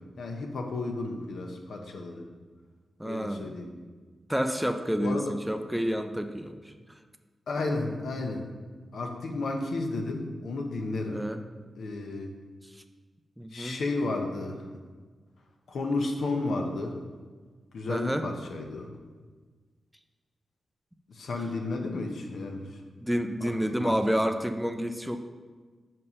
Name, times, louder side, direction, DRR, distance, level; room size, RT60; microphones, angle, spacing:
voice 1, 0.2-2.2 3.0-3.7 5.0-5.3 7.5-8.5 8.9-11.2 11.8-12.3 13.5-14.6 15.7-17.0 17.7-18.9 21.1-22.7 23.4-23.5 23.8-24.0, left 2 dB, 80° left, 3 dB, 0.9 m, -32 dB
voice 2, 3.0-3.5 4.3-6.7 11.1-11.4 13.4-13.8 17.9-18.2 23.0-25.2, equal, 5° right, 7 dB, 0.4 m, -29 dB
5.4 x 5.4 x 5.4 m, 1.4 s
wide cardioid pair, 105°, 0 cm